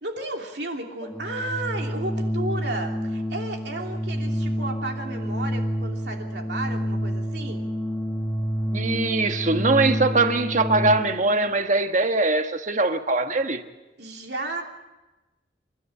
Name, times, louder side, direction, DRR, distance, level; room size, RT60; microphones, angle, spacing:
voice 1, 0.0-7.7 14.0-14.6, right 2 dB, 70° right, 3.0 m, -33 dB
Organ, 1.0-11.3, equal, ahead, 1.3 m, -28 dB
voice 2, 8.7-13.6, right 3 dB, 45° right, 1.2 m, -22 dB
28.0 x 12.5 x 8.5 m
head